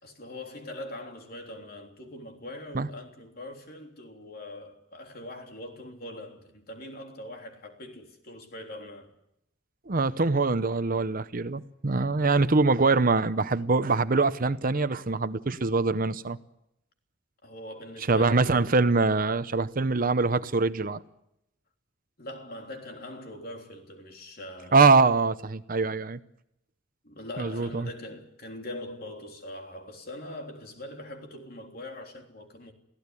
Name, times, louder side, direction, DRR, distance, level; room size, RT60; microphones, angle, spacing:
voice 1, 0.0-9.1 17.4-18.7 22.2-24.8 27.0-32.7, left 1 dB, 50° left, 3.4 m, -42 dB
voice 2, 9.9-16.4 18.1-21.0 24.7-26.2 27.4-27.9, right 3 dB, 45° right, 0.8 m, -23 dB
24.0 x 16.5 x 9.8 m
head